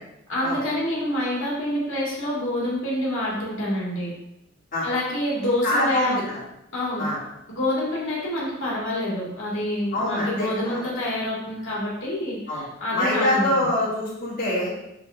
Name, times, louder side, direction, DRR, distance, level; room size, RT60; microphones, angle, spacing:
voice 1, 0.3-4.1 4.8-6.2 6.7-7.1 7.5-13.5, left 1 dB, 70° left, -6 dB, 2.1 m, -27 dB
voice 2, 5.4-6.4 7.0-7.2 9.9-10.8 12.5-12.7 12.9-14.7, left 1 dB, 45° left, -8 dB, 2.0 m, -25 dB
6.7 x 4.3 x 3.4 m, 0.85 s
head